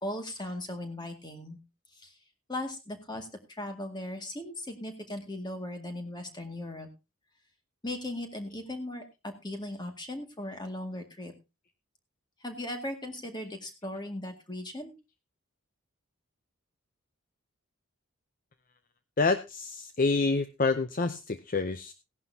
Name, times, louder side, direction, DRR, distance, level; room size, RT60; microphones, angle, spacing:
voice 1, 0.0-1.6 2.0-2.2 2.5-6.9 7.8-11.3 12.4-14.9, left 1 dB, 20° left, 5 dB, 2.0 m, -38 dB
voice 2, 19.2-21.9, left 3 dB, 40° left, 11 dB, 0.6 m, -27 dB
17.0 x 11.0 x 2.8 m, 0.27 s
head